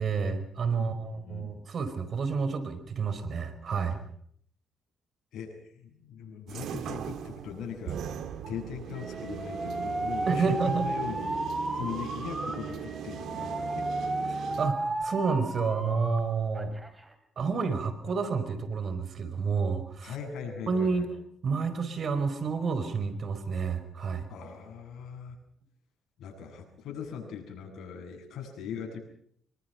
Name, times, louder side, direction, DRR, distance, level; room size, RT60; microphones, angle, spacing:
voice 1, 0.0-4.0 10.3-10.9 14.3-16.7 17.4-20.2 20.7-21.1 21.4-24.3, right 5 dB, 50° right, 10 dB, 4.8 m, -29 dB
voice 2, 0.8-1.5 5.3-8.1 8.5-11.4 11.7-13.9 20.0-21.1 24.3-25.4 26.2-29.0, left 7 dB, 75° left, 3 dB, 7.9 m, -40 dB
sound 1, 6.5-14.7, right 8 dB, 75° right, 2.1 m, -39 dB
Alarm, 8.9-16.2 16.5-17.1, right 2 dB, 15° right, 4.0 m, -34 dB
25.5 x 23.5 x 5.8 m, 0.65 s
cardioid pair, 90°, 0 cm